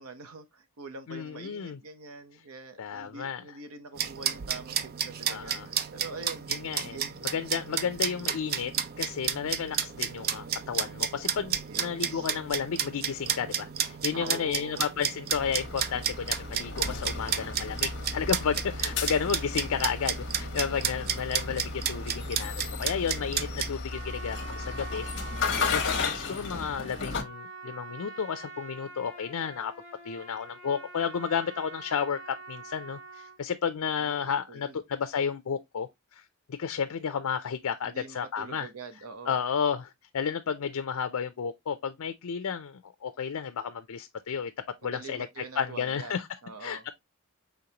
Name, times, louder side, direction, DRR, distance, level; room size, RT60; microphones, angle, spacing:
voice 1, 0.0-6.5 6.8-7.2 7.7-7.9 11.7-12.3 14.1-14.9 20.6-21.1 34.0-34.8 37.8-39.4 44.8-46.1 46.4-46.9, right 4 dB, 75° right, 0.9 m, -44 dB
voice 2, 1.1-1.8 2.8-3.4 5.3-5.7 6.5-7.0 7.3-29.7 30.0-38.7 39.3-44.5 44.8-46.3 46.6-46.9, left 7 dB, 80° left, 0.5 m, -32 dB
sound 1, 4.0-23.7, right 9 dB, 45° right, 0.4 m, -32 dB
sound 2, 15.3-27.2, left 4 dB, 55° left, 1.0 m, -34 dB
Trumpet, 23.9-33.4, right 3 dB, 60° right, 1.7 m, -45 dB
5.2 x 3.5 x 2.8 m
head